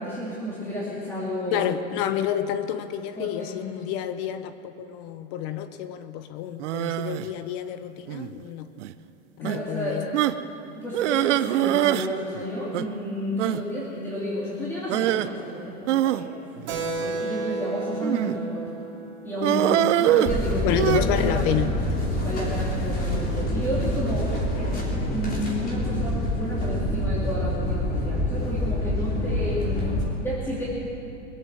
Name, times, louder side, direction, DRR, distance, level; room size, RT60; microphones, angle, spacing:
voice 1, 0.0-1.7 3.2-3.6 9.4-10.1 10.7-16.4 16.7-16.8 17.0-18.6 19.2-21.7 22.2-24.4 25.1-29.9 30.2-30.7, equal, 5° left, -8 dB, 2.6 m, -31 dB
voice 2, 1.5-8.7 9.4-10.1 20.6-22.0, left 10 dB, 50° left, 11 dB, 0.8 m, -29 dB
sound 1, 6.6-7.3 8.1-8.4 8.8-8.9 9.4-9.6 10.1-10.4 10.9-12.1 12.3-12.4 12.7-12.9 13.4-13.6 14.9-15.3 15.9-17.2 18.0-18.5 19.4-21.0, right 14 dB, 85° right, 0.7 m, -24 dB
Keyboard (musical), 16.7-20.8, right 3 dB, 45° right, 3.3 m, -33 dB
sound 2, 20.3-30.0, left 1 dB, 25° left, 3.7 m, -26 dB
23.0 x 7.9 x 7.6 m, 2.8 s
supercardioid pair, 145°, 35 cm